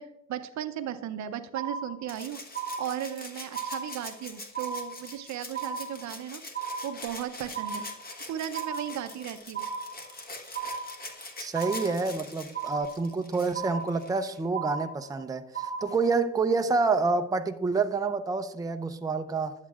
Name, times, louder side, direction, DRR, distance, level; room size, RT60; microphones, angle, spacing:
voice 1, 0.0-2.4 2.8-6.4 6.8-7.9 8.3-9.7, right 10 dB, 65° right, 0.6 m, -36 dB
sound 1, 1.6-2.2 2.6-3.2 3.6-4.2 4.6-5.2 5.6-6.2 6.6-7.2 7.6-8.2 8.6-9.2 9.6-10.2 10.6-11.2 11.6-12.2 12.6-13.2 13.6-14.2 14.6-15.2 15.6-16.2, right 6 dB, 15° left, 1.9 m, -36 dB
Rattle (instrument), 2.1-14.4 15.8-15.9, left 2 dB, 30° left, 1.3 m, -44 dB
voice 2, 11.4-19.5, right 4 dB, 10° right, 0.5 m, -28 dB
11.0 x 7.3 x 2.4 m
cardioid pair, 90°, 30 cm